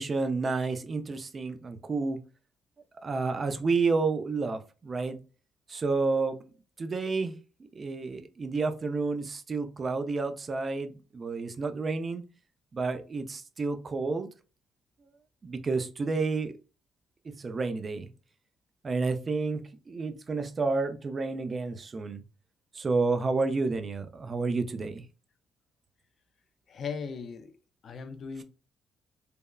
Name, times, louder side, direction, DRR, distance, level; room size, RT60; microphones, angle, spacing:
voice 1, 0.0-2.2 3.0-5.2 5.7-6.4 6.8-7.3 7.8-12.2 12.7-14.3 15.4-16.5 17.3-18.1 18.8-22.2 22.7-25.0, right 4 dB, 35° right, 0.4 m, -30 dB
voice 2, 26.7-27.5 27.8-28.4, left 5 dB, 55° left, 0.4 m, -37 dB
3.3 x 2.0 x 2.3 m
cardioid pair, 90°, 0 cm